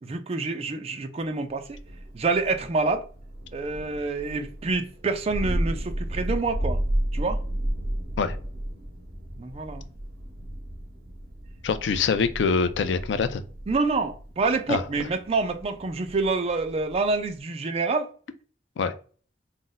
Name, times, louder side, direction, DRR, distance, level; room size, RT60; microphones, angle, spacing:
voice 1, 0.0-1.8 2.1-3.1 3.5-6.8 7.1-7.4 9.4-9.8 13.7-18.1, right 3 dB, 35° right, 0.4 m, -27 dB
Thunder, 1.6-17.4, right 1 dB, 55° right, 0.7 m, -33 dB
voice 2, 11.6-13.4 14.7-14.8 18.8-18.9, left 5 dB, 80° left, 0.4 m, -24 dB
2.5 x 2.1 x 3.8 m
head